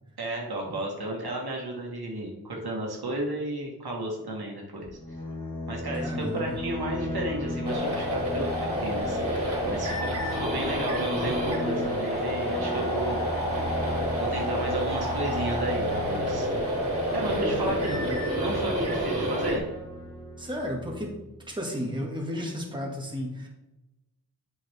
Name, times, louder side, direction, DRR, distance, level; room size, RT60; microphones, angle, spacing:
voice 1, 0.2-5.0 5.7-13.2 14.2-16.5 17.1-18.0 18.4-19.6, right 1 dB, 80° right, -1 dB, 1.7 m, -33 dB
sound 1, 4.8-21.5, left 1 dB, 10° left, 2.3 m, -36 dB
voice 2, 6.0-6.6 17.4-18.2 20.4-21.1 21.5-23.5, equal, 10° right, -1 dB, 1.9 m, -33 dB
sound 2, 7.6-19.6, equal, 40° right, 2.7 m, -29 dB
8.2 x 6.3 x 3.6 m, 0.98 s
wide cardioid pair, 80°, 37 cm